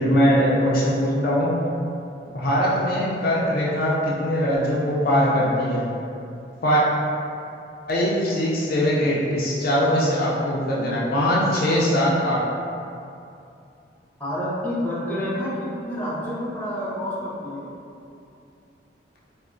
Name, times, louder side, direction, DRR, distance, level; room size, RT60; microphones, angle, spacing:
voice 1, 0.0-1.5 2.3-5.9 6.6-6.8 7.9-12.4, equal, 55° left, -6 dB, 0.4 m, -21 dB
voice 2, 14.2-17.7, equal, 10° left, -9 dB, 0.6 m, -28 dB
4.2 x 2.1 x 2.5 m, 2.6 s
head